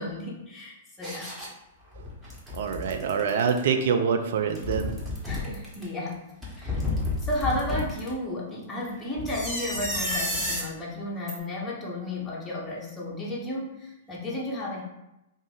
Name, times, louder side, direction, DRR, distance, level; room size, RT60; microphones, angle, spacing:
voice 1, 0.0-1.3 5.3-6.2 6.5-6.8 7.2-14.8, left 1 dB, 10° left, -6 dB, 0.8 m, -33 dB
sound 1, 1.0-1.5 1.9-3.6 4.4-5.8 6.4-8.1 9.2-10.7 11.3-11.4, left 2 dB, 10° right, 1.2 m, -31 dB
voice 2, 2.5-4.9, right 6 dB, 60° right, 6 dB, 0.4 m, -25 dB
2.5 x 2.4 x 3.9 m, 0.91 s
figure-of-eight pair, 105°, 0 cm